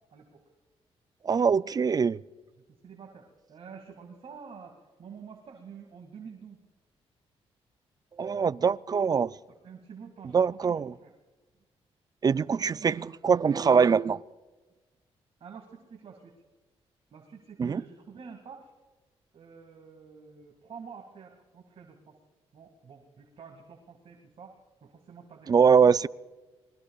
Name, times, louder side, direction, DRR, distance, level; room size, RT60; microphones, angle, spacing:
voice 1, 0.1-0.4 2.7-6.6 9.5-11.1 15.4-16.4 17.1-18.7 19.3-22.2 22.5-25.9, right 6 dB, 60° right, 2.2 m, -48 dB
voice 2, 1.2-2.2 8.2-9.3 10.3-10.9 12.2-14.2 17.6-17.8 25.5-26.1, right 6 dB, 35° right, 0.4 m, -23 dB
26.5 x 20.5 x 2.4 m
cardioid pair, 80°, 11 cm